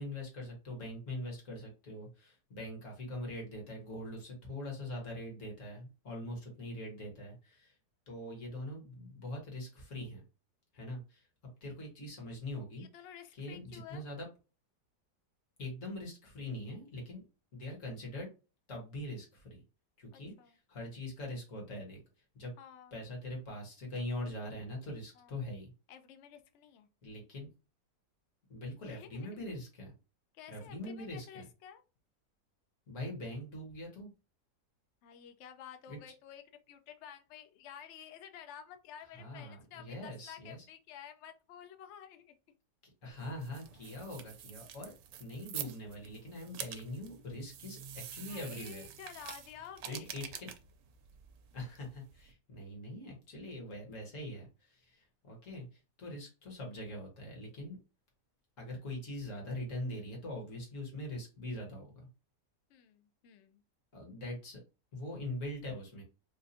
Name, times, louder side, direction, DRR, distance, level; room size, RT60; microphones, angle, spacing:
voice 1, 0.0-7.7 8.1-10.2 10.7-11.2 11.6-12.8 13.3-14.3 15.6-17.2 17.5-18.3 18.7-19.6 20.0-22.0 22.3-22.5 22.9-25.7 27.0-27.5 28.5-29.9 30.5-31.4 32.9-34.1 35.9-36.0 39.1-40.6 43.0-44.9 45.2-48.8 49.9-50.5 51.5-55.7 56.0-57.8 58.6-61.9 63.9-64.6 64.9-66.0, left 1 dB, 50° left, -1 dB, 1.7 m, -42 dB
voice 2, 12.8-14.0 20.1-20.6 22.6-23.0 25.2-25.4 25.9-26.9 28.8-29.4 30.3-31.8 35.0-42.3 48.3-50.2 62.7-63.6, left 9 dB, 90° left, 8 dB, 0.6 m, -51 dB
sound 1, 43.1-52.3, right 9 dB, 85° right, 1.2 m, -47 dB
4.1 x 2.5 x 2.6 m, 0.32 s
omnidirectional pair, 1.8 m